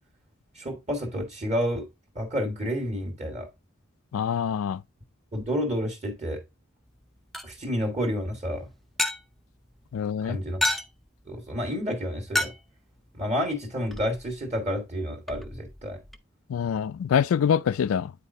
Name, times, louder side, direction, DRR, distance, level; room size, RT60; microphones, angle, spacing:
voice 1, 0.5-1.9 2.1-3.5 5.3-6.4 7.4-8.7 10.2-10.6 11.3-12.5 13.1-16.0, equal, 30° right, 1.5 m, -30 dB
voice 2, 4.1-4.8 9.9-10.4 16.5-18.1, left 8 dB, 85° left, 0.3 m, -25 dB
sound 1, 6.9-16.2, left 1 dB, ahead, 0.3 m, -35 dB
9.1 x 4.2 x 2.6 m
head